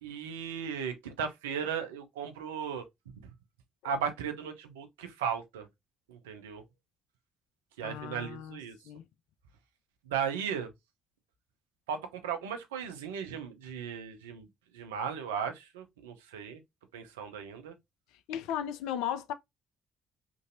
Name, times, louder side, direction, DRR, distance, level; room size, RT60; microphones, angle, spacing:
voice 1, 0.0-3.1 3.8-5.7 6.1-6.6 7.8-8.8 10.1-10.7 11.9-14.5 14.7-16.6 16.9-17.8, right 7 dB, 80° right, 0.5 m, -36 dB
voice 2, 7.8-8.6 8.9-9.0 18.3-19.3, left 10 dB, 70° left, 0.3 m, -36 dB
3.0 x 2.5 x 2.5 m
figure-of-eight pair, 45°, 0 cm